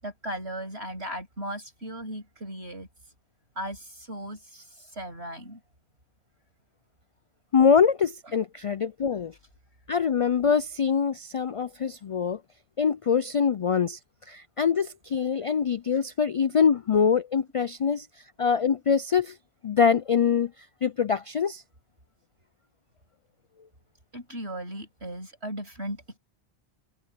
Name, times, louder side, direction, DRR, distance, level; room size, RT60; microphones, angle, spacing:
voice 1, 0.0-2.9 3.6-5.6 24.1-26.2, right 1 dB, 85° right, 7.7 m, -37 dB
voice 2, 7.5-9.3 9.9-12.4 12.8-14.0 14.3-18.1 18.4-19.4 19.6-20.5 20.8-21.6, left 6 dB, 60° left, 0.3 m, -24 dB
omnidirectional pair, 1.1 m